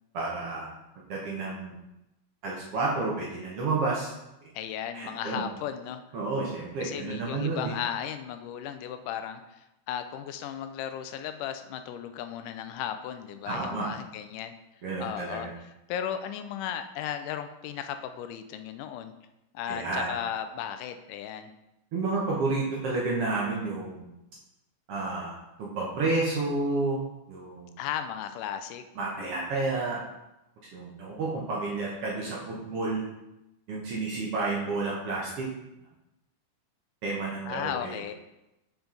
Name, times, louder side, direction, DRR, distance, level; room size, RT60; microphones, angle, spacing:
voice 1, 0.1-0.7 1.1-1.8 2.4-4.1 4.9-5.5 6.1-7.7 13.5-13.9 14.8-15.5 19.7-20.1 21.9-24.1 24.9-27.0 27.3-27.7 29.0-30.0 30.7-33.0 33.7-35.4 37.0-38.0, right 3 dB, 60° right, -4 dB, 1.7 m, -30 dB
voice 2, 4.5-6.0 6.8-14.5 15.0-15.5 15.9-19.1 19.5-21.5 27.8-28.8 37.5-38.1, left 9 dB, 85° left, 8 dB, 2.0 m, -35 dB
7.2 x 5.2 x 3.8 m, 0.92 s
omnidirectional pair, 3.7 m